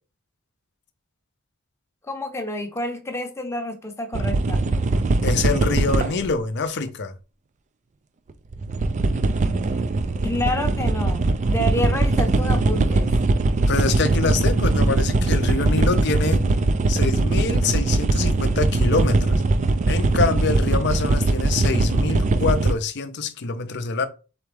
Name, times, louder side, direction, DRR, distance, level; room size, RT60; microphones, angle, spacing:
voice 1, 2.1-4.6 10.2-13.1, left 1 dB, 10° left, 0.7 m, -29 dB
sound 1, 4.1-6.3 8.3-22.7, right 2 dB, 35° right, 0.4 m, -21 dB
voice 2, 5.2-7.1 13.7-16.5 16.9-19.4 19.9-24.1, left 4 dB, 55° left, 0.6 m, -25 dB
4.2 x 3.5 x 3.3 m
head